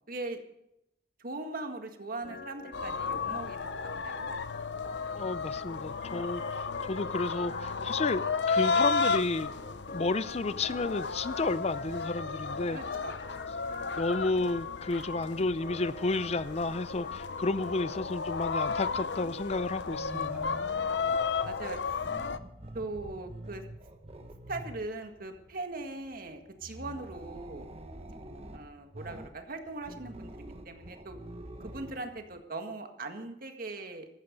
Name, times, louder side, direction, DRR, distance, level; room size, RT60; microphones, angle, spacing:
voice 1, 0.1-0.4 1.2-4.4 12.7-13.3 17.3-17.7 18.0-18.2 20.6-21.2 21.4-22.1 22.7-23.6 24.5-27.7 28.5-31.2 31.6-34.1, right 2 dB, 55° right, 5 dB, 1.8 m, -40 dB
Organ, 2.2-17.3, left 2 dB, 55° left, 2.4 m, -47 dB
sound 1, 2.7-22.4, left 5 dB, 85° left, 0.7 m, -33 dB
voice 2, 5.2-9.5 9.9-12.8 14.0-20.4, left 3 dB, 40° left, 15 dB, 0.5 m, -32 dB
sound 2, 19.8-32.4, right 1 dB, 35° right, 1.4 m, -47 dB
14.5 x 14.0 x 5.3 m, 0.81 s
head